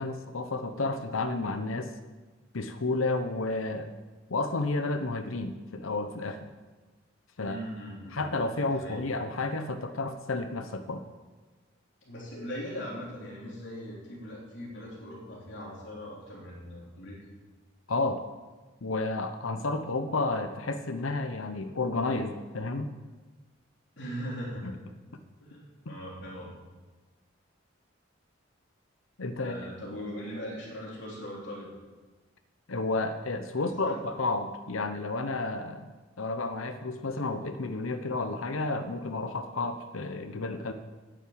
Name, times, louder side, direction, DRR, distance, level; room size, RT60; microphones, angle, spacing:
voice 1, 0.0-1.9 2.5-3.9 4.3-6.5 7.4-7.6 8.1-11.0 17.9-18.2 18.8-22.9 24.6-24.7 25.9-26.0 29.2-29.7 32.7-40.7, left 3 dB, 85° left, 8 dB, 0.9 m, -31 dB
voice 2, 7.4-8.2 8.7-9.0 12.0-17.2 24.0-24.8 25.4-26.5 29.4-31.7 33.6-33.9, equal, 60° left, -4 dB, 3.4 m, -40 dB
9.5 x 8.9 x 8.8 m, 1.3 s
head